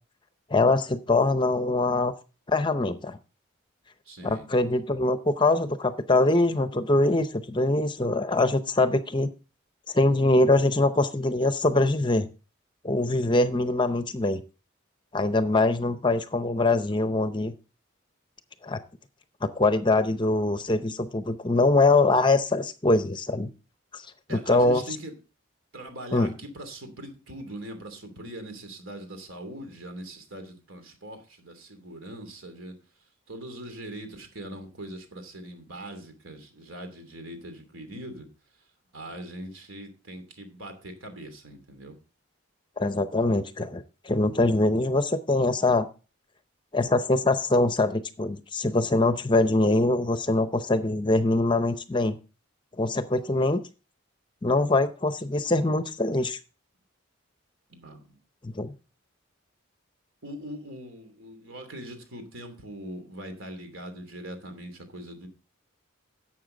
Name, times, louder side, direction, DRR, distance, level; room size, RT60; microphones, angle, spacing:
voice 1, 0.5-2.1 2.5-3.2 4.2-9.3 9.9-12.3 12.8-14.4 15.1-17.5 18.6-18.8 19.4-23.5 23.9-24.0 24.3-24.8 26.1-26.3 42.8-45.9 46.7-52.2 52.8-53.6 54.4-56.4 58.4-58.7, left 2 dB, 20° left, 11 dB, 0.6 m, -23 dB
voice 2, 4.0-4.5 24.3-25.2 25.7-32.7 33.3-38.3 38.9-41.9 57.7-58.2 60.2-65.3, right 1 dB, 75° right, 6 dB, 2.8 m, -41 dB
11.5 x 7.7 x 3.8 m, 0.33 s
head